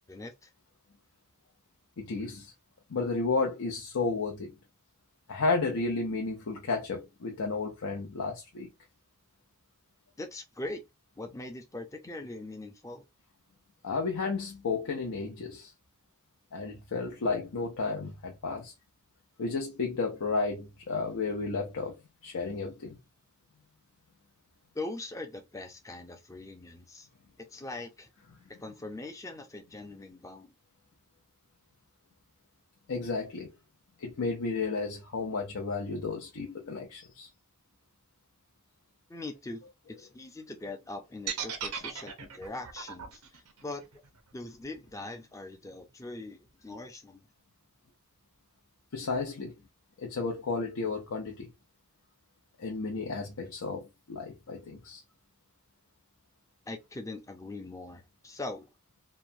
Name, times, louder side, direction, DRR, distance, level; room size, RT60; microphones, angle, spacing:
voice 1, 0.1-0.5 10.2-10.8 11.2-13.0 24.7-27.1 27.5-28.1 28.5-30.5 39.1-39.6 40.0-43.8 44.3-47.2 56.7-58.7, left 2 dB, 15° left, 0.5 m, -41 dB
voice 2, 2.0-2.5 2.9-4.6 5.3-8.7 13.8-15.7 16.5-18.7 19.4-23.0 32.9-33.5 34.0-37.3 48.9-49.6 50.0-51.5 52.6-55.0, left 4 dB, 70° left, 0.6 m, -32 dB
sound 1, 41.3-45.3, right 7 dB, 85° right, 0.7 m, -38 dB
2.9 x 2.2 x 2.5 m
head